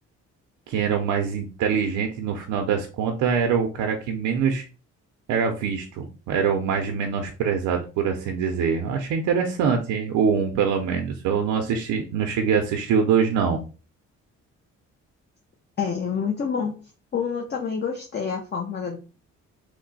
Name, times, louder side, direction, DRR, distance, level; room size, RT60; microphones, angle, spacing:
voice 1, 0.7-4.6 5.3-13.6, right 6 dB, 85° right, 4 dB, 0.6 m, -24 dB
voice 2, 15.8-16.7 17.1-19.0, left 6 dB, 35° left, 1 dB, 0.7 m, -27 dB
3.1 x 2.1 x 3.9 m, 0.34 s
cardioid pair, 90°, 30 cm